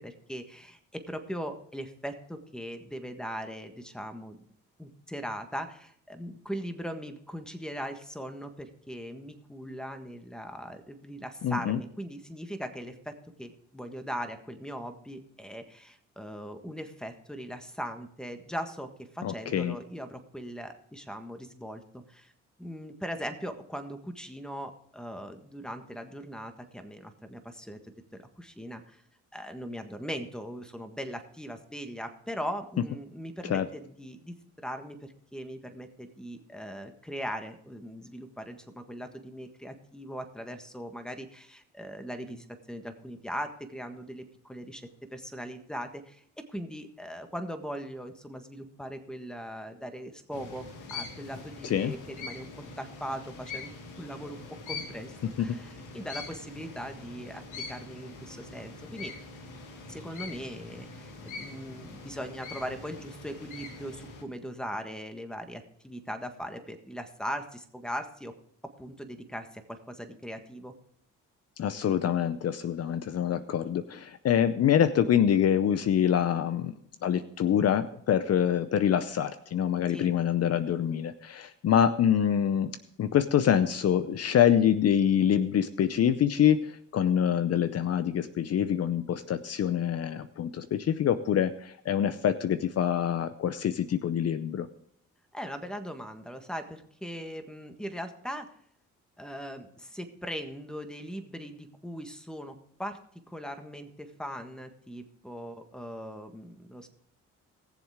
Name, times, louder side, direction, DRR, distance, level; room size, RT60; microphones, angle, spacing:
voice 1, 0.0-4.4 4.8-22.3 22.6-27.8 28.1-29.0 29.3-46.2 46.5-52.5 52.8-59.1 59.9-68.3 68.8-70.7 79.9-80.1 95.3-98.5 99.2-103.0 103.3-106.9, equal, ahead, 7 dB, 1.6 m, -40 dB
voice 2, 11.4-11.8 19.2-19.8 33.4-33.7 51.6-51.9 55.4-55.5 71.6-76.7 77.0-94.7, left 9 dB, 55° left, 12 dB, 0.7 m, -25 dB
sound 1, 50.3-64.2, left 3 dB, 80° left, 2.1 m, -43 dB
19.5 x 7.2 x 3.6 m, 0.65 s
cardioid pair, 90°, 30 cm